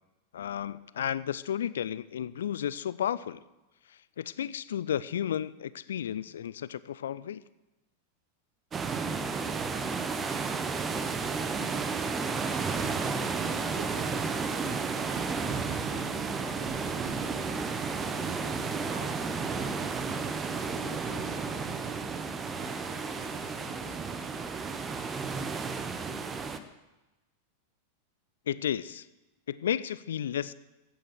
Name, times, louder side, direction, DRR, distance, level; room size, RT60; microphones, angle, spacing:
voice 1, 0.3-3.4 3.9-7.4 28.5-29.1 29.5-30.5, left 9 dB, 65° left, 18 dB, 0.5 m, -33 dB
sound 1, 8.7-26.6, right 4 dB, 20° right, 1.0 m, -32 dB
voice 2, 13.7-14.4 15.1-19.8 20.7-21.7 22.5-24.4, right 1 dB, 65° right, 1 dB, 3.9 m, -49 dB
14.5 x 9.0 x 7.9 m, 1.0 s
figure-of-eight pair, 90°, 0 cm